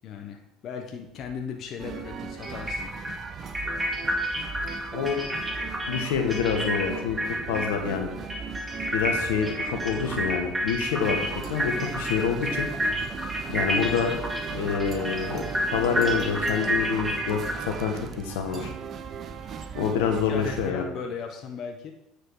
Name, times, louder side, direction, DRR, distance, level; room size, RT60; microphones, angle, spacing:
voice 1, 0.0-2.9 19.8-21.9, left 6 dB, 55° left, 4 dB, 0.9 m, -37 dB
sound 1, 1.2-1.3 2.4-7.9 8.2-18.4, equal, 15° right, 2.1 m, -30 dB
sound 2, 1.8-20.7, right 7 dB, 50° right, 0.8 m, -37 dB
voice 2, 4.9-5.3 5.9-7.2 7.5-8.1 8.9-12.7 13.5-14.2 14.5-15.4 15.7-18.7 19.7-20.9, left 7 dB, 80° left, 4 dB, 1.2 m, -27 dB
8.6 x 4.9 x 4.7 m, 0.84 s
hypercardioid pair, 70°, 0 cm